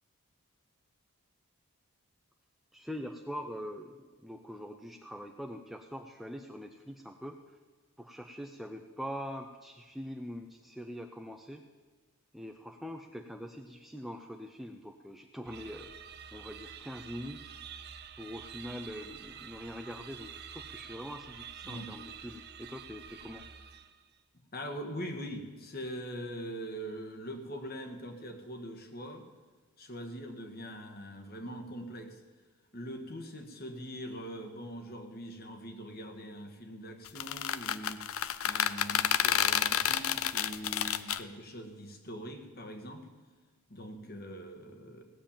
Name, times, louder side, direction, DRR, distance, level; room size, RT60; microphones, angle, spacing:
voice 1, 2.7-7.4 8.0-11.6 12.3-15.9 16.3-17.5 18.2-23.4, equal, ahead, 4 dB, 0.5 m, -43 dB
sound 1, 15.4-24.1, right 8 dB, 45° right, 0.8 m, -48 dB
voice 2, 24.5-29.2 29.8-32.2 32.7-38.1 38.4-43.1 43.7-45.0, equal, 45° left, 5 dB, 1.6 m, -42 dB
sound 2, 37.1-41.2, left 10 dB, 70° left, 0.6 m, -29 dB
17.0 x 7.3 x 8.8 m, 1.4 s
head